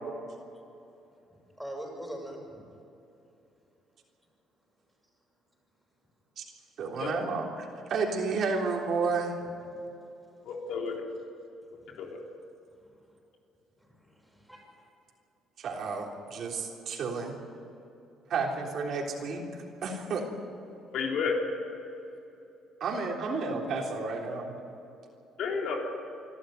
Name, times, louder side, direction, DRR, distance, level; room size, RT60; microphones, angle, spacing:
voice 1, 1.6-2.7 9.4-9.5 11.9-12.0 12.8-12.9 13.9-14.8, right 1 dB, ahead, 0 dB, 6.6 m, -42 dB
voice 2, 6.8-9.3 15.6-17.4 18.3-20.3 22.8-24.5, right 4 dB, 60° right, 0 dB, 3.6 m, -31 dB
voice 3, 10.5-11.0 12.0-12.2 20.9-21.4 25.4-25.8, left 6 dB, 70° left, 1 dB, 3.6 m, -31 dB
26.0 x 13.0 x 9.3 m, 2.9 s
cardioid pair, 100°, 0 cm